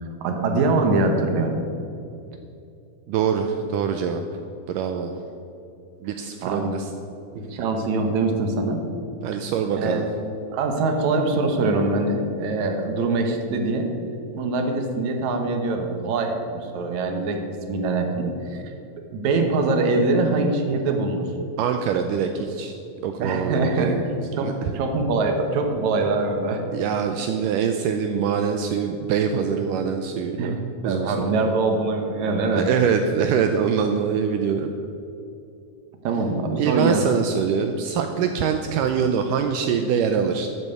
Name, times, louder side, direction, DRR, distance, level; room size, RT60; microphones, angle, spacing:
voice 1, 0.2-1.6 6.4-6.7 7.3-8.8 9.7-10.1 10.5-13.9 14.3-17.4 17.7-18.7 19.1-21.2 23.2-23.9 24.4-26.6 30.4-30.5 30.8-32.7 36.0-37.1, right 3 dB, 65° right, 4 dB, 2.2 m, -23 dB
voice 2, 3.1-4.2 4.7-5.1 6.0-6.9 9.2-10.0 21.6-22.8 23.0-24.0 24.3-24.8 26.7-30.6 30.8-31.4 32.6-34.7 36.6-40.5, right 7 dB, 80° right, 6 dB, 2.0 m, -24 dB
12.5 x 8.4 x 6.8 m, 2.7 s
omnidirectional pair, 4.2 m